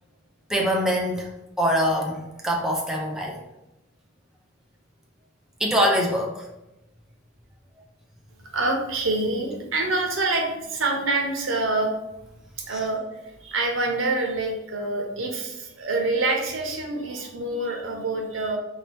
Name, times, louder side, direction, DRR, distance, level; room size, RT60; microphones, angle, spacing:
voice 1, 0.5-1.3 1.6-3.4 5.6-6.5 12.7-12.8, equal, 5° right, -2 dB, 0.6 m, -24 dB
voice 2, 8.5-12.1 12.7-18.6, right 2 dB, 75° right, 2 dB, 0.9 m, -26 dB
5.0 x 2.8 x 3.4 m, 0.93 s
head